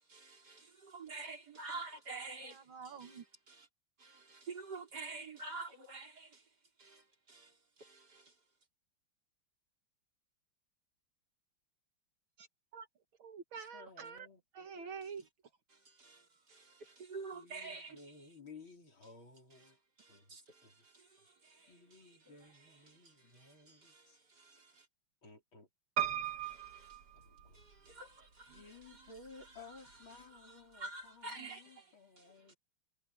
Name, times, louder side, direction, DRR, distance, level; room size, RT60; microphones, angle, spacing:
voice 1, 0.2-2.6 3.0-3.2 3.5-3.6 4.0-6.4 6.8-7.0 7.3-7.5 7.8-8.2 16.0-16.2 16.5-18.0 20.0-20.7 20.9-21.1 21.4-22.0 22.9-23.0 23.3-24.0 24.4-24.7 26.4-26.9 27.5-28.6 28.9-29.1 30.7-31.8 32.2-32.3, right 3 dB, 45° right, 4.2 m, -48 dB
voice 2, 2.4-3.2 12.4-12.5 12.7-12.9 13.2-14.3 14.5-15.2, right 6 dB, 65° right, 2.5 m, -47 dB
voice 3, 13.7-14.4 17.3-19.8 20.1-20.7 21.7-24.2 25.2-25.7 27.1-27.7 28.2-32.6, left 4 dB, 65° left, 4.9 m, -57 dB
Piano, 26.0-27.9 28.6-29.3 29.6-29.7 29.9-30.0, right 11 dB, 80° right, 3.2 m, -38 dB
omnidirectional pair, 2.4 m